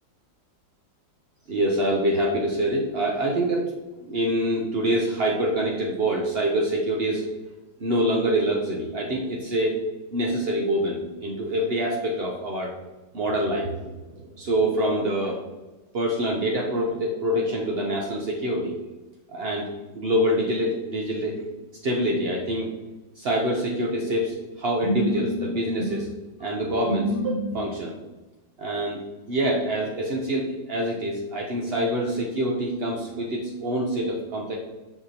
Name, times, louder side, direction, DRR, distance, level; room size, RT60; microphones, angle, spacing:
voice 1, 1.5-3.7 4.0-7.2 7.8-9.8 10.1-12.7 13.1-15.4 15.9-18.8 19.3-21.4 21.8-22.7 23.2-26.1 26.4-27.9 28.6-29.0 29.3-34.6, right 1 dB, 70° right, -2 dB, 0.5 m, -25 dB
5.8 x 5.8 x 2.8 m, 1.1 s
omnidirectional pair, 2.0 m